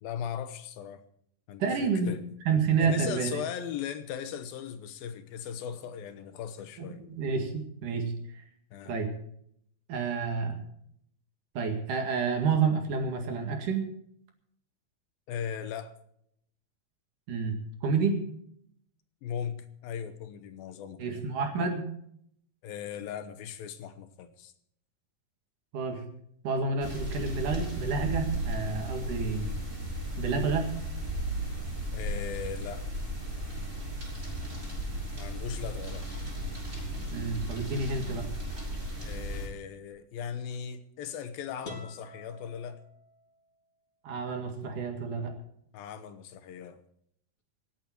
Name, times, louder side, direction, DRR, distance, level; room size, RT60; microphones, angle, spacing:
voice 1, 0.0-1.0 1.5-2.2 2.8-7.0 8.7-9.0 15.3-15.9 19.2-21.2 22.6-24.5 31.9-32.9 35.1-36.1 39.0-42.8 45.7-46.8, left 8 dB, 90° left, 10 dB, 3.0 m, -38 dB
voice 2, 1.6-2.2 2.4-3.4 6.8-8.4 8.9-9.2 9.9-10.6 11.5-13.9 17.3-17.5 17.8-18.2 21.0-21.8 25.7-26.0 26.4-29.5 30.2-30.7 37.1-38.3 44.0-45.4, right 5 dB, 65° right, 4 dB, 3.4 m, -29 dB
sound 1, 26.8-39.5, right 1 dB, 20° right, 5.9 m, -35 dB
sound 2, 41.6-43.5, left 2 dB, 35° left, 1.6 m, -48 dB
26.0 x 8.9 x 4.5 m, 0.70 s
omnidirectional pair, 4.1 m